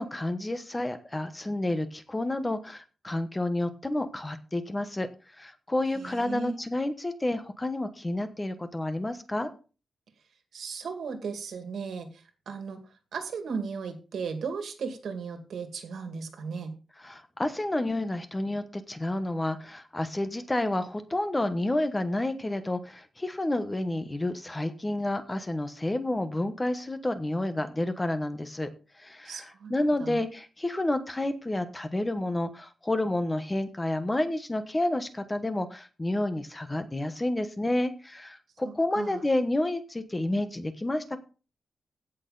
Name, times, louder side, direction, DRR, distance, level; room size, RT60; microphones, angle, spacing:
voice 1, 0.0-5.1 5.4-9.5 17.0-28.7 29.0-41.2, left 1 dB, 15° left, 10 dB, 1.1 m, -30 dB
voice 2, 5.9-6.5 10.5-12.8 13.1-16.7 29.2-29.7 30.0-30.2 38.6-39.2, right 5 dB, 75° right, 7 dB, 2.2 m, -36 dB
16.5 x 6.5 x 4.0 m, 0.35 s
wide cardioid pair, 170°, 0 cm